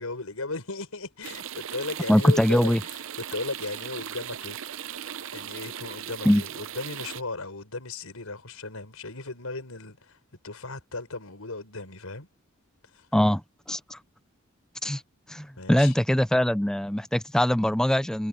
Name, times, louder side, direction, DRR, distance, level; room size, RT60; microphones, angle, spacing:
voice 1, 0.0-3.0 3.3-4.6 5.3-10.2 10.4-12.3 12.9-13.1 15.5-15.9, left 3 dB, 80° left, 5.0 m, -36 dB
sound 1, 1.2-7.2, right 9 dB, 65° right, 0.7 m, -38 dB
voice 2, 2.1-2.8 6.3-6.4 13.1-13.4 13.7-14.0 14.8-15.0 15.3-18.3, equal, 5° left, 0.3 m, -22 dB
head